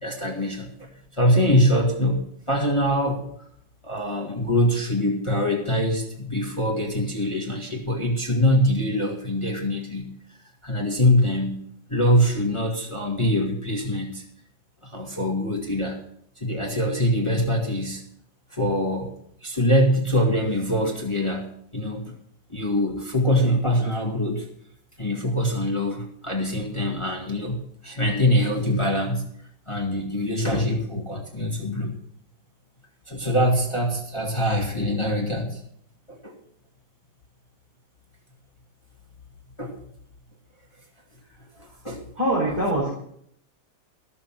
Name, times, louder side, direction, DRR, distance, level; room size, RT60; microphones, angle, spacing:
voice 1, 0.0-3.2 3.8-10.1 10.6-11.6 11.9-14.2 14.8-16.0 16.4-18.0 18.5-19.1 19.4-22.2 22.5-24.5 25.0-29.3 29.7-32.0 33.1-35.6 36.1-36.3 39.6-39.7 41.6-42.0, equal, 15° left, 0 dB, 1.9 m, -24 dB
voice 2, 41.2-41.8 42.1-42.9, right 1 dB, 45° right, -4 dB, 4.7 m, -25 dB
14.5 x 7.1 x 7.4 m, 0.68 s
omnidirectional pair, 2.2 m